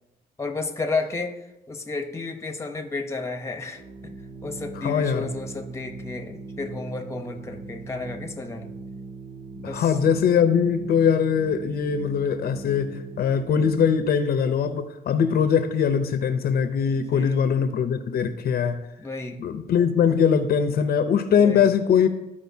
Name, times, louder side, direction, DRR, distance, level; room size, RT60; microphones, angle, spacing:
voice 1, 0.4-4.2 4.4-8.7 9.6-10.0 16.9-17.4 19.0-19.4 21.4-21.7, left 3 dB, 15° left, 5 dB, 0.8 m, -32 dB
Organ, 3.6-14.3, right 3 dB, 80° right, 2.4 m, -40 dB
voice 2, 4.8-5.3 9.6-18.8 19.4-22.1, left 7 dB, 70° left, 9 dB, 0.7 m, -21 dB
13.5 x 4.9 x 2.8 m, 0.95 s
cardioid pair, 135°, 16 cm